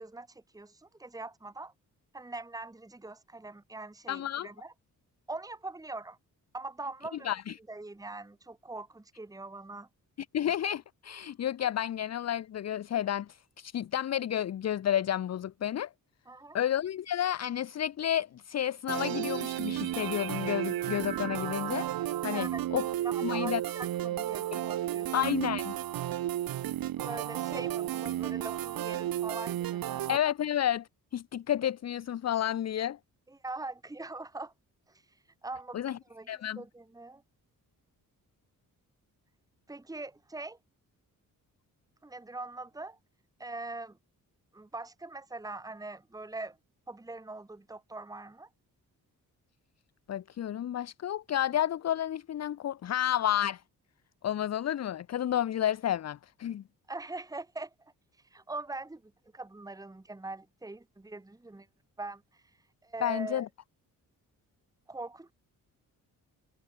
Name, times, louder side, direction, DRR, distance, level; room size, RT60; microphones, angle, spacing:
voice 1, 0.0-1.7 2.1-4.7 5.3-6.2 6.5-7.3 7.7-9.9 16.3-16.6 22.3-22.7 23.0-25.1 27.0-30.0 33.3-34.5 34.9-35.0 35.4-37.2 39.7-40.6 42.0-43.0 43.4-44.0 44.5-46.6 46.9-48.5 56.9-57.9 58.3-61.7 62.0-62.4 62.8-63.4 64.9-65.3, right 2 dB, 10° right, 2.2 m, -42 dB
voice 2, 4.1-4.5 7.2-7.5 10.3-15.9 16.5-21.9 22.2-22.5 22.7-22.8 23.2-23.6 24.5-24.6 25.1-25.7 30.1-33.0 35.7-36.0 36.3-36.6 50.1-53.6 54.2-56.6 63.0-63.5, left 11 dB, 50° left, 0.8 m, -31 dB
sound 1, 18.9-30.2, right 13 dB, 90° right, 1.2 m, -33 dB
wide cardioid pair, 155°, 34 cm